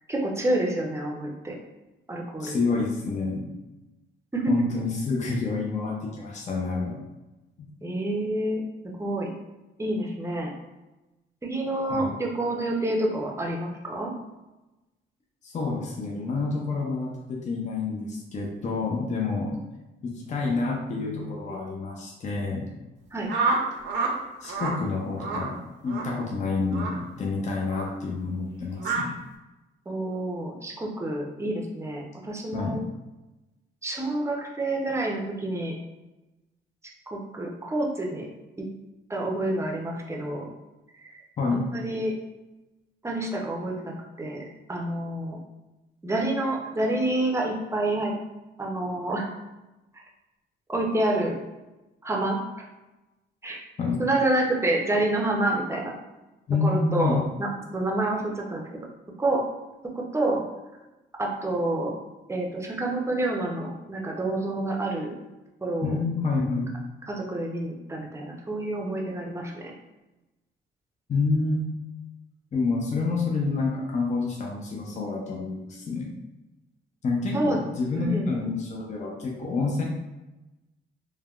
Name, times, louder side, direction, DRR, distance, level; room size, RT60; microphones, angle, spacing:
voice 1, 0.1-1.6 2.1-2.6 4.3-4.5 7.8-9.3 9.8-10.5 11.4-14.1 23.1-23.3 29.9-32.8 33.8-35.7 37.1-38.3 38.6-38.7 39.1-40.5 41.0-41.2 41.5-42.1 43.0-45.4 46.0-48.1 48.6-49.3 50.7-51.4 52.0-52.6 53.4-53.6 54.0-55.9 56.6-57.5 57.7-58.7 59.2-59.4 59.9-60.4 61.2-61.9 62.3-65.1 65.6-66.0 67.1-69.7 77.3-77.6 78.0-78.3, right 1 dB, 15° right, -1 dB, 0.6 m, -28 dB
voice 2, 2.4-3.5 4.5-7.0 11.9-12.1 15.4-19.6 20.0-22.7 24.4-29.1 32.5-32.8 41.4-41.7 53.8-54.0 56.5-57.2 65.8-66.7 71.1-71.7 72.5-76.1 77.0-79.8, left 3 dB, 35° left, -1 dB, 0.6 m, -28 dB
sound 1, 23.3-24.1 24.4-24.8 25.2-25.5 25.9-26.1 26.7-27.0 27.7-27.9 28.8-29.0, right 4 dB, 65° right, 0.6 m, -27 dB
3.3 x 2.2 x 2.3 m, 1.0 s
cardioid pair, 90°, 20 cm